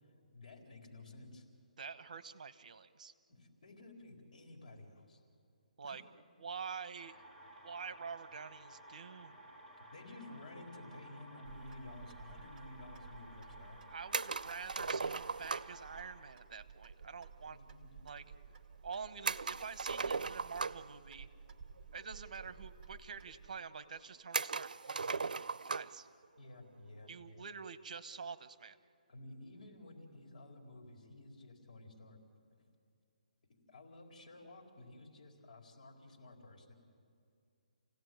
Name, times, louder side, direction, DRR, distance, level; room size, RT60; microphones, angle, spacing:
voice 1, 0.3-1.5 3.3-5.2 5.8-5.9 9.8-13.8 17.4-17.9 26.4-27.4 29.1-32.2 33.5-36.7, left 2 dB, 65° left, 1 dB, 4.3 m, -53 dB
voice 2, 1.8-3.1 5.8-6.0 6.4-7.2 7.6-9.4 13.8-17.6 18.0-18.2 18.8-21.3 21.9-25.3 25.7-26.1 27.1-28.8, right 6 dB, 60° right, 12 dB, 1.2 m, -47 dB
sound 1, 7.0-16.3, right 1 dB, 5° left, 2.6 m, -56 dB
Clock, 11.4-23.6, right 6 dB, 15° right, 1.5 m, -56 dB
sound 2, 14.1-15.8 19.3-21.0 22.0-22.1 22.4-22.5 23.3-23.4 24.3-26.0, right 4 dB, 90° right, 0.6 m, -37 dB
29.5 x 17.0 x 9.3 m, 2.4 s
hypercardioid pair, 160°, 5 cm